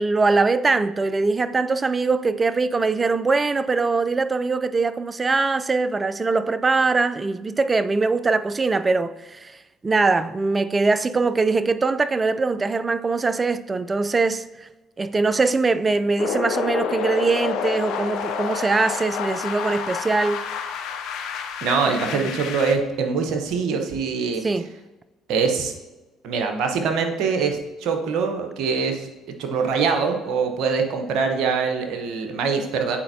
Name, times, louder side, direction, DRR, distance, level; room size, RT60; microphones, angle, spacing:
voice 1, 0.0-9.6 9.8-14.7 15.0-20.4 22.0-22.3 24.4-24.7, right 3 dB, 25° right, 0.4 m, -22 dB
sound 1, 16.2-22.7, left 7 dB, 70° left, 0.6 m, -29 dB
voice 2, 21.6-24.5 25.3-25.7 26.2-29.1 29.4-33.0, right 5 dB, 65° right, 0.9 m, -23 dB
8.7 x 4.2 x 2.7 m
hypercardioid pair, 65°, 0 cm